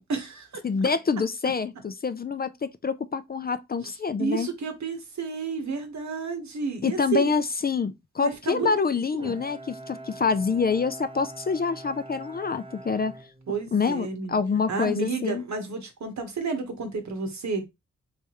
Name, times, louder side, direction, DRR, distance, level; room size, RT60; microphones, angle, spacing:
voice 1, 0.0-0.6 3.8-3.9 4.2-7.3 8.2-8.7 9.1-9.3 13.5-14.4 14.7-17.7, right 5 dB, 65° right, 1.1 m, -31 dB
voice 2, 0.6-4.5 6.8-13.1 13.7-15.4, left 5 dB, 30° left, 0.4 m, -26 dB
Bowed string instrument, 9.2-14.1, right 2 dB, 20° right, 0.6 m, -44 dB
3.4 x 3.3 x 3.0 m
cardioid pair, 70°, 30 cm